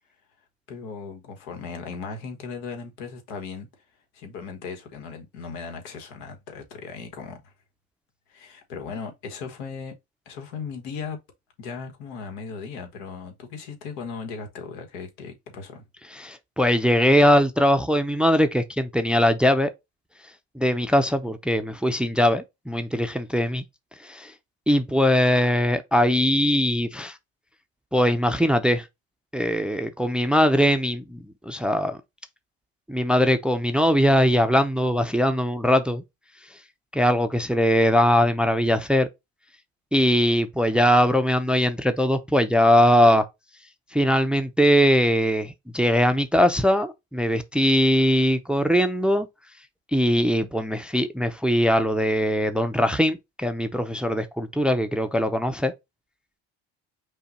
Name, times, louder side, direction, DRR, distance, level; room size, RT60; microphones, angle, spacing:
voice 1, 0.7-3.7 4.1-7.5 8.3-9.9 10.2-11.2 11.6-15.8, left 5 dB, 90° left, 1.3 m, -37 dB
voice 2, 16.1-19.7 20.6-23.6 24.0-24.3 24.7-27.2 27.9-28.8 29.3-32.0 32.9-36.0 36.9-39.1 39.9-43.2 43.9-49.3 49.9-55.7, equal, 5° right, 0.4 m, -21 dB
5.5 x 2.2 x 4.1 m
supercardioid pair, 100°, 34 cm